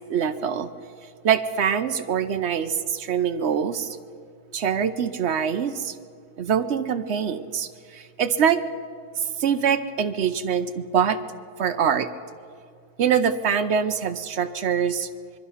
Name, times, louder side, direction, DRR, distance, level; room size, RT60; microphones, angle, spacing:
voice 1, 0.1-0.7 1.2-4.0 4.5-5.9 6.4-8.6 9.2-11.2 11.6-12.1 13.0-15.1, right 7 dB, 60° right, 9 dB, 0.7 m, -24 dB
25.5 x 22.0 x 5.7 m, 2.2 s
omnidirectional pair, 2.1 m